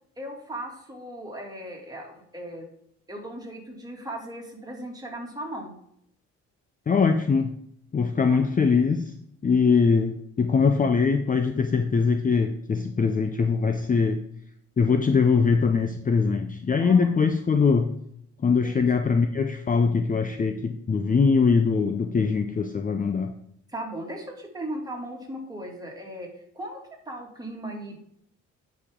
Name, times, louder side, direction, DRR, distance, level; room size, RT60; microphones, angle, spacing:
voice 1, 0.2-2.7 3.1-5.7 8.3-8.5 16.8-17.1 18.6-18.9 23.7-26.3 26.5-26.8 27.1-28.0, right 1 dB, 15° right, 0 dB, 2.4 m, -37 dB
voice 2, 6.9-7.5 7.9-9.1 9.4-14.2 14.8-17.9 18.4-23.3, left 5 dB, 25° left, 7 dB, 0.6 m, -22 dB
9.4 x 5.0 x 3.7 m, 0.71 s
cardioid pair, 90°, 30 cm